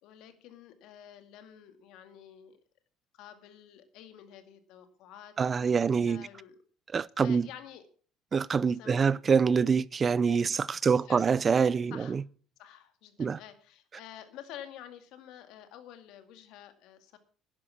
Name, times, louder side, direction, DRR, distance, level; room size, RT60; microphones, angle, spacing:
voice 1, 0.0-2.6 3.1-5.8 6.1-6.6 7.2-7.9 8.7-9.1 10.5-10.6 11.0-11.3 11.9-12.2 12.6-17.2, left 10 dB, 70° left, 2.2 m, -49 dB
voice 2, 5.4-6.3 6.9-7.5 8.3-12.2 13.2-13.4, right 6 dB, 35° right, 0.5 m, -25 dB
11.0 x 10.5 x 5.9 m
supercardioid pair, 90°, 0 cm